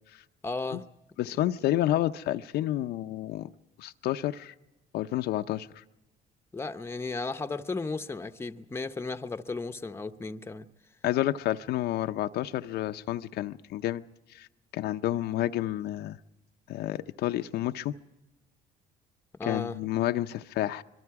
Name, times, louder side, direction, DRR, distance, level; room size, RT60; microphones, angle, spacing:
voice 1, 0.4-0.9 6.5-10.7 19.4-19.8, left 3 dB, 15° left, 0.8 m, -35 dB
voice 2, 1.2-3.5 3.8-4.5 4.9-5.8 11.0-14.0 14.3-14.5 14.7-16.2 16.7-17.9 19.4-20.8, left 14 dB, 75° left, 0.7 m, -30 dB
25.0 x 22.5 x 4.7 m
cardioid pair, 110°, 17 cm